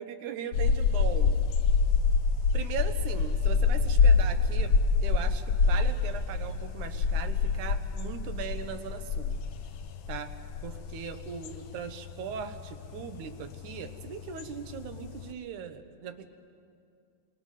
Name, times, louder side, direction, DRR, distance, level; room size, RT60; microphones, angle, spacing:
voice 1, 0.0-1.4 2.5-9.4 10.1-10.3 10.6-16.3, right 8 dB, 80° right, 8 dB, 2.5 m, -39 dB
sound 1, 0.5-15.3, left 5 dB, 80° left, 1.1 m, -26 dB
29.0 x 25.0 x 4.9 m, 2.4 s
omnidirectional pair, 3.5 m